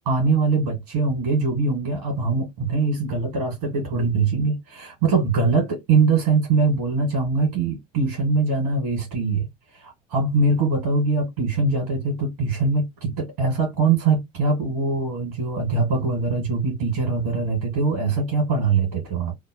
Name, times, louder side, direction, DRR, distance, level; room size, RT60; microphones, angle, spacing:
voice 1, 0.1-9.5 9.8-19.3, right 4 dB, 85° right, 1.9 m, -22 dB
3.2 x 2.1 x 2.9 m
hypercardioid pair, 75°, 19 cm